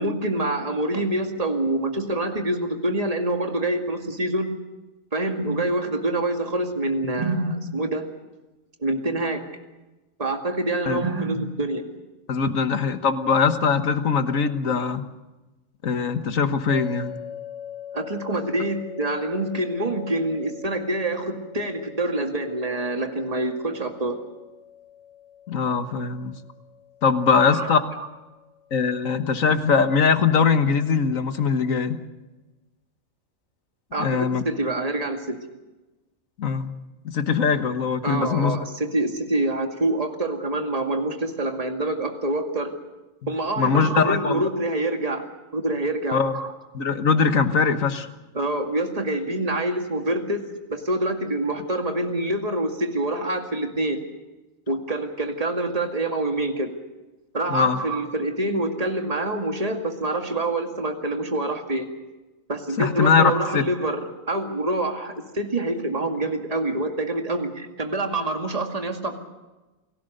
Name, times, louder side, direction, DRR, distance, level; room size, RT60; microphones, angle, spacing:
voice 1, 0.0-4.5 5.1-8.0 8.8-9.4 10.2-11.8 17.9-24.2 27.3-28.1 33.9-35.4 38.0-42.7 43.3-45.3 45.5-46.5 48.3-50.5 50.7-54.0 54.7-56.7 57.3-61.9 62.5-69.3, right 2 dB, 30° right, 4 dB, 2.2 m, -26 dB
voice 2, 12.3-15.1 15.8-17.2 25.5-26.3 27.0-27.8 28.7-32.0 34.0-34.4 36.4-36.7 37.1-38.6 43.6-44.5 46.1-46.4 46.7-48.1 57.5-57.8 62.8-63.6, left 5 dB, 85° left, 9 dB, 1.8 m, -21 dB
sound 1, 16.7-29.8, left 8 dB, 70° right, 7.0 m, -43 dB
29.0 x 18.0 x 6.7 m, 1.1 s
omnidirectional pair, 1.4 m